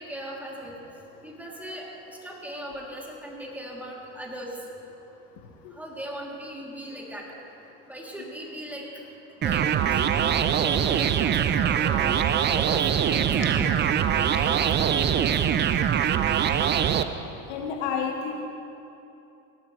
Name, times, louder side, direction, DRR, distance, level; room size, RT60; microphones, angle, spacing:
voice 1, 0.0-4.7 5.7-7.3 7.9-8.8 9.3-15.5, right 1 dB, 5° right, -3 dB, 2.9 m, -39 dB
sound 1, 9.4-17.0, right 9 dB, 30° right, 0.6 m, -23 dB
voice 2, 17.5-18.5, left 6 dB, 65° left, 3 dB, 1.3 m, -30 dB
18.0 x 12.0 x 3.2 m, 2.8 s
hypercardioid pair, 80°, 38 cm